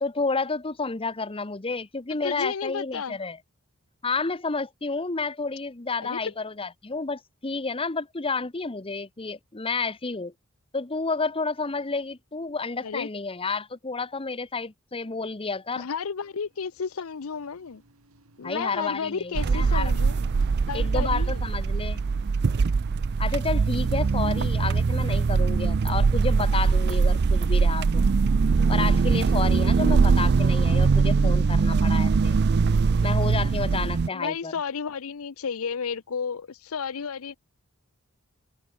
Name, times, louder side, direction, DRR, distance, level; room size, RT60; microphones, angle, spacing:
voice 1, 0.0-3.4 4.0-10.3 10.7-15.9 18.4-20.0 20.7-22.0 23.2-28.0 28.7-32.4 33.0-34.5, left 4 dB, 25° left, 1.0 m, -30 dB
voice 2, 2.2-3.2 6.0-6.3 12.8-13.1 15.8-17.8 18.4-20.3 20.7-21.4 34.1-37.4, left 6 dB, 80° left, 0.6 m, -32 dB
sound 1, 15.6-34.7, right 2 dB, 90° right, 3.5 m, -58 dB
sound 2, 19.4-34.1, right 4 dB, 50° right, 0.4 m, -22 dB
open air
head